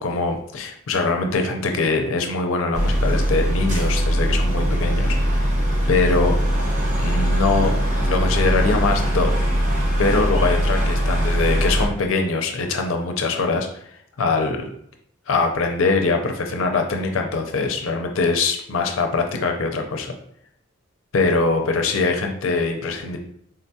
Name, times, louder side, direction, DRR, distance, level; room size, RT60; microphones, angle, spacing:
voice 1, 0.0-5.2 5.9-6.4 7.0-9.4 10.0-13.7 14.2-14.6 15.3-20.1 21.1-23.2, left 3 dB, 70° left, 4 dB, 0.5 m, -22 dB
sound 1, 2.7-11.9, equal, 35° right, 0.9 m, -21 dB
3.7 x 2.3 x 2.7 m, 0.70 s
head